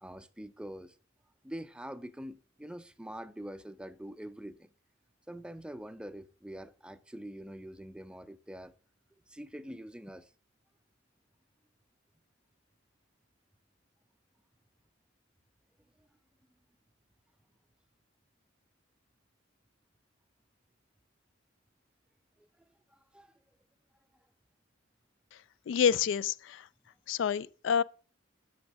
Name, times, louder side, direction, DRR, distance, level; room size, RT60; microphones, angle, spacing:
voice 1, 0.0-1.0 1.4-4.7 5.3-8.7 9.3-10.3 16.0-16.1 22.4-22.5 22.9-23.3, equal, 5° right, 0.4 m, -45 dB
voice 2, 25.7-26.7 27.1-27.8, left 7 dB, 65° left, 0.3 m, -28 dB
6.3 x 6.0 x 6.3 m
head